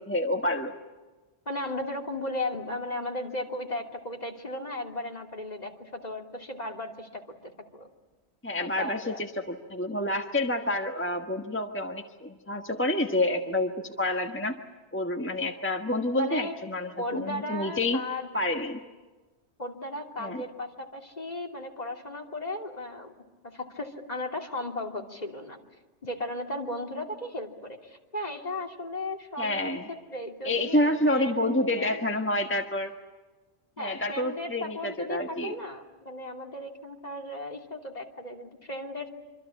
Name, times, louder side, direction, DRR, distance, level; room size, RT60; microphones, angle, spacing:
voice 1, 0.1-0.7 8.4-14.6 14.9-18.0 18.3-18.8 20.2-20.4 29.4-29.9 30.4-32.9 33.8-35.5, left 1 dB, 10° left, 4 dB, 1.4 m, -28 dB
voice 2, 1.5-7.9 8.6-9.2 16.1-16.5 17.0-18.3 19.6-23.1 23.4-25.6 26.0-29.8 30.1-32.0 33.8-39.1, left 1 dB, 35° left, 2 dB, 2.9 m, -36 dB
25.5 x 25.5 x 8.4 m, 1.2 s
omnidirectional pair, 1.2 m